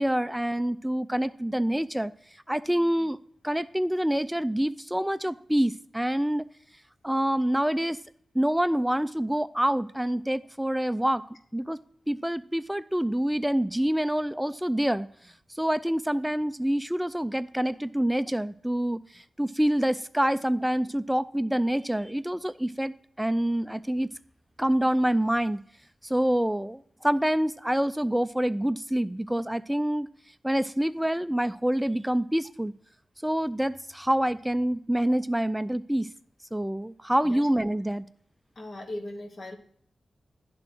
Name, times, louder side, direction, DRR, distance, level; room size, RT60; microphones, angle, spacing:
voice 1, 0.0-2.1 2.5-3.2 3.4-6.5 7.0-8.0 8.3-11.2 11.5-11.8 12.1-15.1 15.6-24.1 24.6-25.6 26.0-30.1 30.4-32.7 33.2-36.1 36.5-38.0, right 1 dB, 5° right, 14 dB, 0.3 m, -26 dB
voice 2, 38.6-39.6, left 1 dB, 55° left, 3 dB, 1.2 m, -38 dB
10.5 x 3.8 x 6.0 m, 0.62 s
wide cardioid pair, 95°, 0 cm